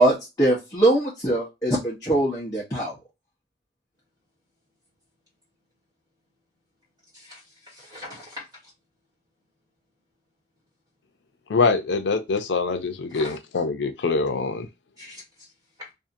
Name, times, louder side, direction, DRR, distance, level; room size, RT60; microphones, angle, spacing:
voice 1, 0.0-2.9, right 1 dB, 20° left, 0.8 m, -22 dB
voice 2, 7.1-8.5 13.1-13.4 15.0-15.5 15.8-15.9, left 2 dB, 20° right, 1.3 m, -41 dB
voice 3, 11.5-14.7, left 4 dB, 85° left, 0.5 m, -24 dB
2.6 x 2.4 x 2.5 m
head